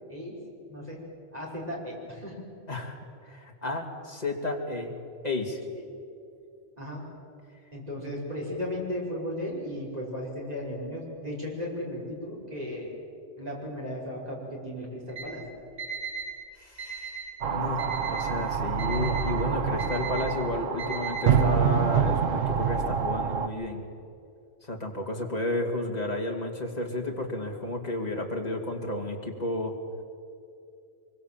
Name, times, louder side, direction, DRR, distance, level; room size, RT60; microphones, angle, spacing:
voice 1, 0.7-1.0 1.3-2.4 5.7-5.8 6.8-7.0 7.7-12.9 13.4-15.4, left 1 dB, 30° right, -3 dB, 5.4 m, -35 dB
voice 2, 2.7-3.0 3.3-4.9 5.2-5.6 16.6-17.1 17.5-23.8 24.6-29.7, left 2 dB, 30° left, 1 dB, 2.8 m, -32 dB
Alarm, 15.1-15.2 15.8-16.3 16.8-17.3 17.8-18.3 18.8-19.3 19.8-20.3 20.8-21.3, right 6 dB, 45° right, 8.0 m, -37 dB
sound 1, 17.4-23.5, right 7 dB, 85° right, 1.4 m, -26 dB
24.0 x 23.0 x 7.6 m, 2.5 s
omnidirectional pair, 1.3 m